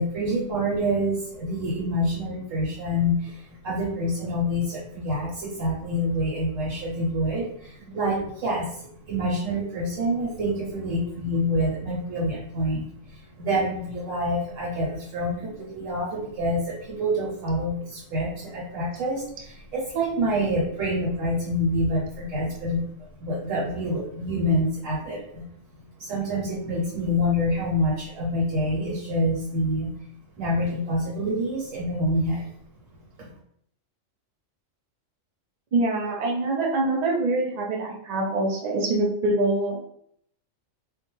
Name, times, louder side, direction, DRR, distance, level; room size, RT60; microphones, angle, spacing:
voice 1, 0.0-25.4 26.0-29.9 30.4-32.5 33.2-33.3, equal, 80° right, -5 dB, 1.1 m, -27 dB
voice 2, 35.7-39.8, right 2 dB, 65° right, -1 dB, 0.4 m, -24 dB
2.3 x 2.1 x 2.9 m, 0.69 s
omnidirectional pair, 1.3 m